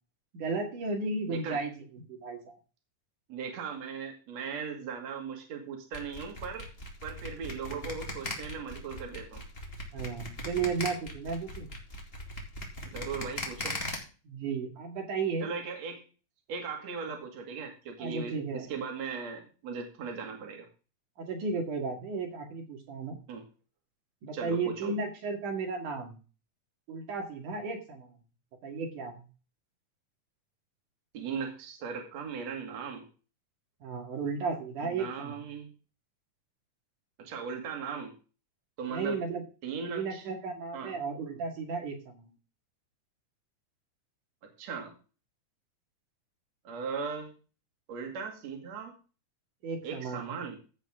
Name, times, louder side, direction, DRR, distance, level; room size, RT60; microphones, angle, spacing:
voice 1, 0.3-2.6 9.9-11.7 14.3-15.5 18.0-18.7 21.2-23.2 24.2-26.2 26.9-28.2 28.6-29.2 33.8-35.4 38.9-39.4 39.9-42.3 49.6-50.4, right 4 dB, 75° right, 2 dB, 3.8 m, -34 dB
voice 2, 1.3-1.6 3.3-6.7 7.0-9.4 12.8-13.8 15.4-16.0 16.5-20.7 23.3-23.4 24.3-24.9 31.1-33.1 34.8-35.7 37.3-38.1 38.8-39.2 39.6-40.2 40.7-40.9 44.6-44.9 46.7-47.3 47.9-49.0 49.8-50.6, right 5 dB, 60° right, 2 dB, 3.3 m, -38 dB
sound 1, 5.9-14.0, left 1 dB, 20° left, 2.6 m, -38 dB
15.5 x 8.1 x 3.8 m, 0.35 s
omnidirectional pair, 3.6 m